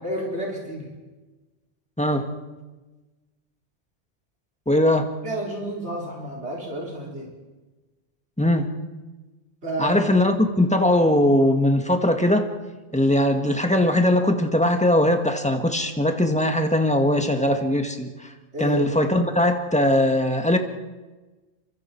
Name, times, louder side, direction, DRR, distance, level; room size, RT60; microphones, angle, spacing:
voice 1, 0.0-0.9 5.2-7.3 9.6-10.1 18.5-18.9, right 1 dB, 70° right, -2 dB, 4.6 m, -30 dB
voice 2, 2.0-2.3 4.7-5.1 8.4-8.8 9.8-12.5 12.9-18.1 18.6-20.6, left 1 dB, 5° left, 5 dB, 1.7 m, -20 dB
29.0 x 24.0 x 4.6 m, 1.2 s
omnidirectional pair, 1.2 m